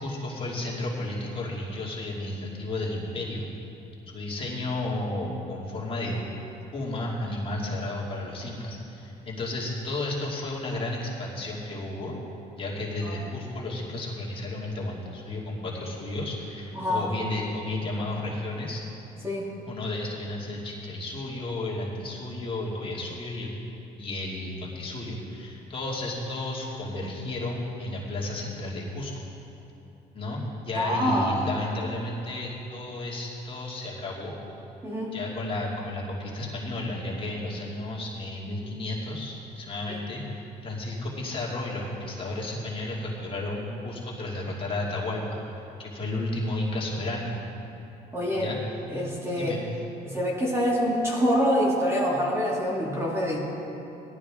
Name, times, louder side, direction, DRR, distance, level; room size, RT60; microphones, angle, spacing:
voice 1, 0.0-3.5 4.1-6.2 6.7-12.1 12.6-18.8 19.7-23.6 24.0-29.3 30.1-34.3 35.1-45.4 45.8-47.4 48.3-48.6 49.4-49.8, left 2 dB, 30° left, -5 dB, 2.5 m, -33 dB
voice 2, 16.8-17.1 19.2-19.5 30.8-31.4 34.8-35.2 39.9-40.0 48.1-48.5 48.9-49.6 50.0-53.4, equal, 15° right, -4 dB, 2.2 m, -26 dB
17.5 x 12.0 x 3.7 m, 3.0 s
cardioid pair, 110°, 17 cm